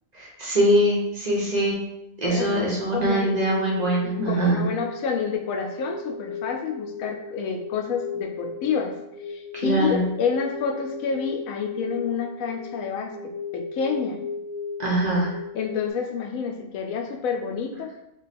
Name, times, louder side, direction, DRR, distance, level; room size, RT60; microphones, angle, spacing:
voice 1, 0.1-1.8 2.2-4.6 9.6-10.0 14.8-15.4, right 1 dB, 35° right, -4 dB, 0.8 m, -22 dB
voice 2, 2.3-3.3 4.3-8.9 9.3-14.2 15.5-17.9, left 6 dB, 85° left, 3 dB, 1.0 m, -29 dB
sound 1, 3.2-15.9, left 5 dB, 35° left, 0.8 m, -36 dB
3.1 x 2.3 x 4.1 m, 0.86 s
omnidirectional pair, 1.4 m